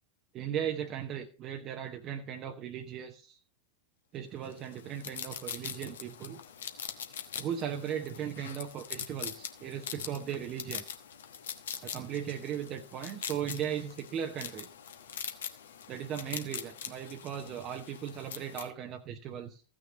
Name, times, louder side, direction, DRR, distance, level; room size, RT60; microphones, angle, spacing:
voice 1, 0.3-3.4 4.1-6.4 7.4-10.8 11.8-14.7 15.9-19.6, right 9 dB, 35° right, 0.9 m, -37 dB
sound 1, 4.5-18.7, left 8 dB, 65° left, 1.1 m, -43 dB
15.5 x 6.3 x 3.9 m
figure-of-eight pair, 90°, 0 cm